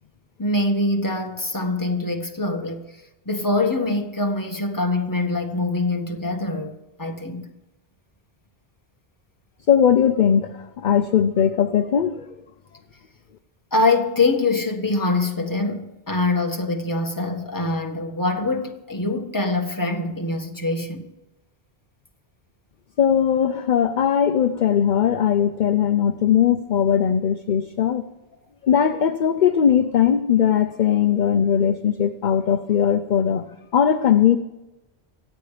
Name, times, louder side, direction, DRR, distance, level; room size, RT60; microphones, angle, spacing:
voice 1, 0.4-2.8 3.2-7.5 13.7-21.1, left 2 dB, 20° left, 1.6 m, -24 dB
voice 2, 9.7-12.3 23.0-28.1 28.6-34.4, left 8 dB, 50° left, 0.7 m, -19 dB
24.5 x 8.7 x 5.0 m
omnidirectional pair, 1.1 m